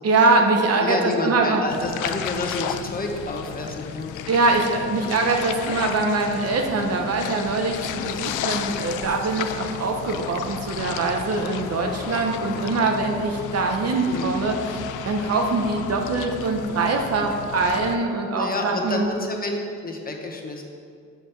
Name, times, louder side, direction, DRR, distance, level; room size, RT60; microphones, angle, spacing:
voice 1, 0.0-1.6 4.3-19.0, right 3 dB, 55° right, 3 dB, 1.0 m, -23 dB
voice 2, 0.8-4.1 14.1-14.3 18.3-20.6, left 2 dB, 30° left, 2 dB, 1.1 m, -29 dB
sound 1, 1.7-18.0, left 10 dB, 85° left, 0.5 m, -33 dB
7.1 x 5.1 x 5.8 m, 2.2 s
cardioid pair, 90°, 30 cm